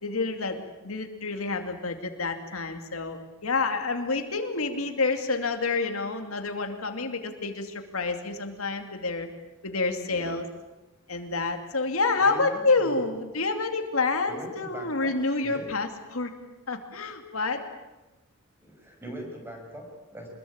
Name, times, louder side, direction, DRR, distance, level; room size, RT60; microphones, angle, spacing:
voice 1, 0.0-9.3 9.6-10.5 11.1-16.3 16.7-17.6, left 3 dB, 80° left, 5 dB, 2.6 m, -28 dB
voice 2, 12.2-13.1 14.3-15.7 18.6-20.3, right 1 dB, 10° right, 2 dB, 6.6 m, -41 dB
25.5 x 21.5 x 8.8 m, 1.1 s
head